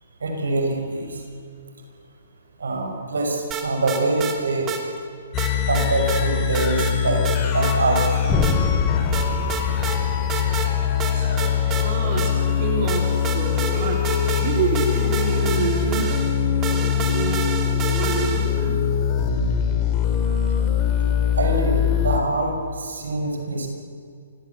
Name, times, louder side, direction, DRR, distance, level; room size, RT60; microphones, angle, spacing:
voice 1, 0.2-1.2 2.6-4.7 5.7-7.3 7.5-8.4 11.6-11.7 21.4-23.7, right 2 dB, 80° right, 3 dB, 5.9 m, -24 dB
sound 1, 3.5-4.4 4.7-4.8 5.4-6.2 6.5-7.0 7.3-8.1 8.4-8.6 9.1-10.0 10.3-10.7 11.0-12.6 12.9-18.6, right 6 dB, 25° right, 3.0 m, -30 dB
sound 2, 5.3-22.2, left 8 dB, 30° left, 2.9 m, -22 dB
sound 3, 8.3-12.2, left 3 dB, 10° left, 2.9 m, -28 dB
voice 2, 11.1-16.2 16.5-17.5 17.9-18.8, right 4 dB, 45° right, 1 dB, 3.9 m, -28 dB
29.0 x 17.0 x 8.4 m, 2.3 s
hypercardioid pair, 135°, 0 cm